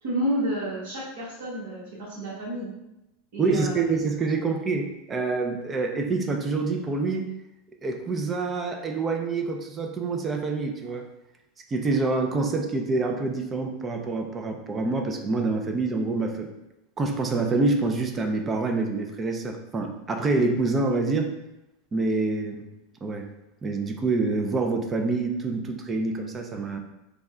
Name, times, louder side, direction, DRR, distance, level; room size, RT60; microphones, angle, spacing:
voice 1, 0.0-2.7 3.3-3.8, equal, 65° right, -8 dB, 1.3 m, -30 dB
voice 2, 3.4-7.3 7.8-11.1 11.7-16.5 17.0-21.3 21.9-22.7 23.0-23.3 23.6-26.8, right 3 dB, 20° right, 4 dB, 0.5 m, -26 dB
3.4 x 2.2 x 3.6 m, 0.92 s
supercardioid pair, 120°, 0 cm